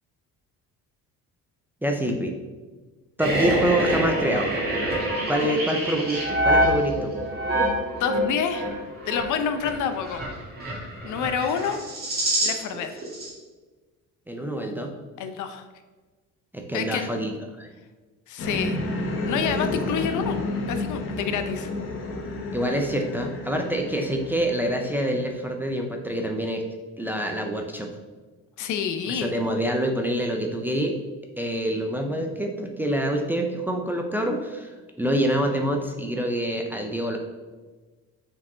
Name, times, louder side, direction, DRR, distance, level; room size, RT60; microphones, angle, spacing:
voice 1, 1.8-2.3 3.2-4.5 5.3-7.1 14.3-14.9 16.5-17.7 22.5-26.6 27.0-27.9 29.1-31.0 31.4-37.2, right 1 dB, 5° right, 2 dB, 0.4 m, -26 dB
sound 1, 3.2-12.8 13.0-13.3, right 1 dB, 30° right, 1.9 m, -26 dB
voice 2, 8.0-8.7 9.1-10.2 11.0-11.8 12.4-12.9 15.2-15.6 16.7-17.1 18.3-18.8 19.2-20.4 20.7-21.7 28.6-29.3, left 7 dB, 65° left, 8 dB, 0.7 m, -28 dB
sound 2, 18.4-25.4, left 2 dB, 40° left, 0.9 m, -31 dB
6.0 x 4.7 x 3.8 m, 1.3 s
cardioid pair, 150°, 32 cm